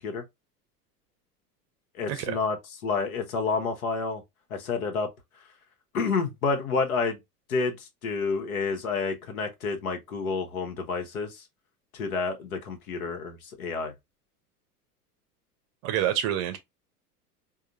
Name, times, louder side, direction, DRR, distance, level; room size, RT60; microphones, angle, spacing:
voice 1, 2.0-2.6 2.8-4.2 4.5-5.1 5.9-7.2 7.5-11.4 11.9-13.9, left 4 dB, 60° left, 1.2 m, -29 dB
voice 2, 15.8-16.6, right 11 dB, 35° right, 0.7 m, -27 dB
4.7 x 2.3 x 2.6 m
figure-of-eight pair, 85°, 47 cm